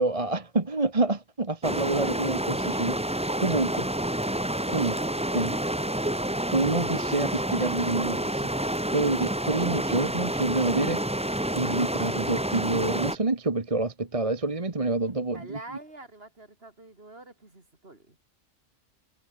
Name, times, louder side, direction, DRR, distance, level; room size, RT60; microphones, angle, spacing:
voice 1, 0.0-3.0 3.4-3.9 4.7-5.6 6.5-8.5 8.9-11.0 11.5-15.6, right 2 dB, 25° right, 1.6 m, -27 dB
sound 1, 1.6-13.2, right 1 dB, 5° right, 0.9 m, -29 dB
voice 2, 15.3-18.2, right 2 dB, 50° right, 4.2 m, -46 dB
omnidirectional pair, 1.3 m